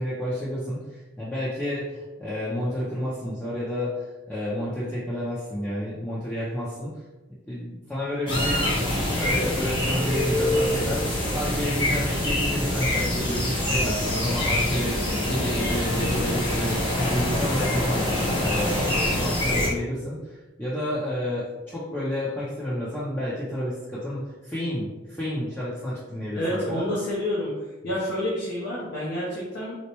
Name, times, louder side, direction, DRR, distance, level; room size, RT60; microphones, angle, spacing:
voice 1, 0.0-6.9 7.5-8.7 9.1-11.1 11.3-18.1 18.4-26.8, equal, 10° left, -10 dB, 0.6 m, -30 dB
sound 1, 8.3-19.7, left 1 dB, 25° left, 0.9 m, -25 dB
voice 2, 26.3-27.5 27.8-29.8, left 1 dB, 65° left, -7 dB, 0.8 m, -28 dB
4.2 x 2.1 x 2.9 m, 1.2 s
head